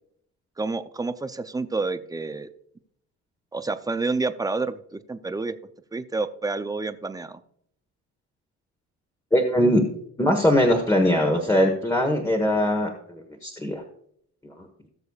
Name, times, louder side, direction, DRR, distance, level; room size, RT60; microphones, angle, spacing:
voice 1, 0.6-2.5 3.5-5.5 5.9-7.4, right 3 dB, 10° right, 10 dB, 0.5 m, -29 dB
voice 2, 9.3-9.8 10.2-13.8, equal, 10° left, 1 dB, 1.3 m, -21 dB
18.5 x 6.8 x 2.4 m, 0.68 s
cardioid pair, 120°, 31 cm